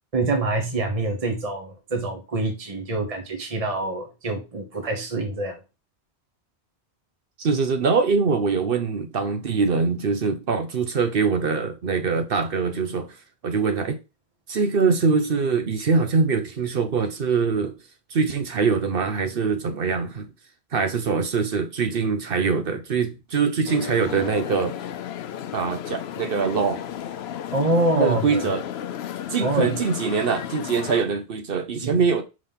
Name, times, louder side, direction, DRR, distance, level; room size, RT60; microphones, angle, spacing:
voice 1, 0.1-5.6 27.5-28.4 29.4-29.8 31.8-31.9, right 2 dB, 35° right, 1.2 m, -25 dB
voice 2, 7.4-13.1 13.4-14.0 14.5-17.8 18.1-20.3 20.7-24.8 25.5-26.8 27.9-28.6 29.3-32.2, right 5 dB, 60° right, 0.9 m, -23 dB
sound 1, 23.7-31.1, left 10 dB, 70° left, 0.8 m, -34 dB
5.2 x 3.8 x 5.6 m
omnidirectional pair, 1.1 m